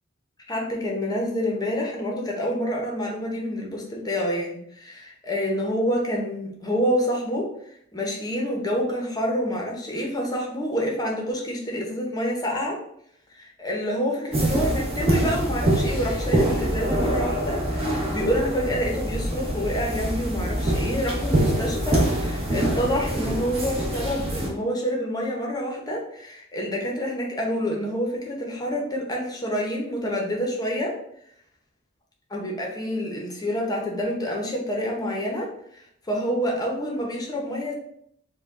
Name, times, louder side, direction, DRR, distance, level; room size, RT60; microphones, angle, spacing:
voice 1, 0.5-12.8 13.3-31.0 32.3-37.7, equal, 20° left, -1 dB, 0.8 m, -27 dB
sound 1, 14.3-24.5, right 1 dB, 30° right, 1.0 m, -25 dB
4.8 x 2.3 x 3.6 m, 0.70 s
head